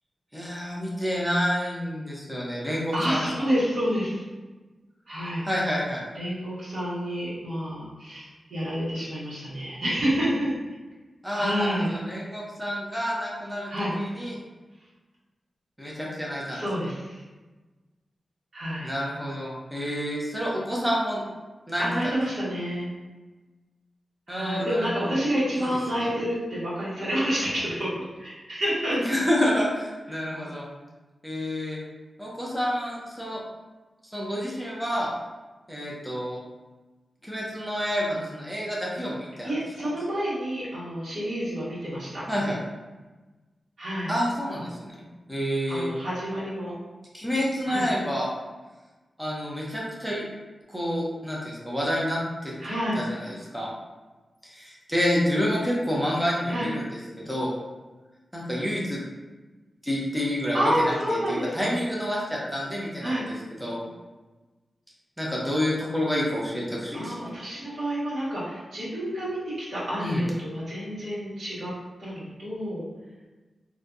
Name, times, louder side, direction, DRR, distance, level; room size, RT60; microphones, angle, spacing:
voice 1, 0.3-3.3 5.4-6.0 11.2-13.7 14.0-14.3 15.8-16.6 18.8-21.2 21.7-21.9 24.3-24.9 25.5-26.1 29.1-30.7 31.2-31.8 32.2-33.4 34.1-35.1 35.7-36.4 37.2-39.5 42.3-42.6 44.1-45.0 45.3-45.9 47.1-48.3 49.2-50.2 50.7-52.5 53.0-53.7 54.4-56.9 57.2-57.5 58.3-59.0 59.8-60.8 61.3-63.2 63.6-63.8 65.2-67.2 67.6-67.8 70.0-70.2, equal, ahead, -5 dB, 0.6 m, -28 dB
voice 2, 2.9-4.2 5.1-5.5 6.1-10.5 11.3-11.9 13.7-14.2 16.5-17.2 18.5-18.9 21.8-22.9 24.3-29.1 39.4-42.2 43.8-44.1 45.7-46.7 47.7-47.8 52.6-53.0 56.5-56.7 60.5-61.7 63.0-63.2 66.9-71.7 72.0-72.8, equal, 60° right, -10 dB, 1.3 m, -29 dB
3.4 x 2.6 x 2.6 m, 1.2 s
wide cardioid pair, 150°, 0 cm